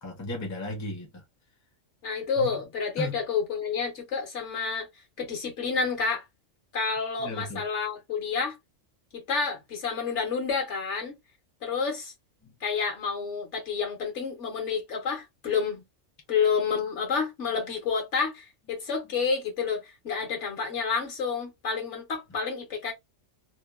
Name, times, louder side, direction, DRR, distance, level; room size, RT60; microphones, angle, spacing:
voice 1, 0.0-1.2 2.4-2.5 3.0-3.2 7.2-7.6 12.4-12.5, left 2 dB, 20° left, 0.5 m, -35 dB
voice 2, 2.0-4.9 5.2-6.2 6.7-8.6 9.1-11.1 11.6-12.1 12.6-15.8 16.3-22.9, left 5 dB, 65° left, 1.2 m, -29 dB
2.9 x 2.2 x 2.3 m
omnidirectional pair, 1.3 m